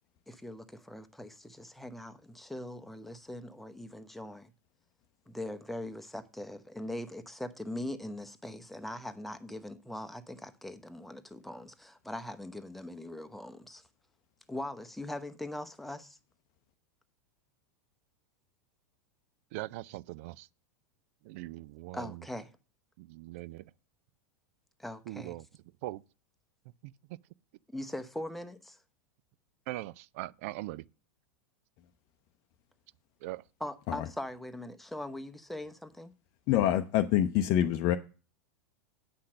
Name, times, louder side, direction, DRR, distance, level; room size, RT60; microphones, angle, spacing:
voice 1, 0.3-4.5 5.3-13.8 14.5-16.2 21.9-22.5 24.8-25.4 27.7-28.8 33.6-36.1, left 1 dB, ahead, 0.9 m, -41 dB
voice 2, 19.5-20.5 21.2-22.2 23.0-23.7 25.1-25.5 25.8-26.0 26.8-26.9 29.7-30.8 33.2-33.4, right 17 dB, 55° right, 0.4 m, -40 dB
voice 3, 36.5-38.0, left 11 dB, 45° left, 0.6 m, -26 dB
8.6 x 5.7 x 6.3 m
hypercardioid pair, 90°, 9 cm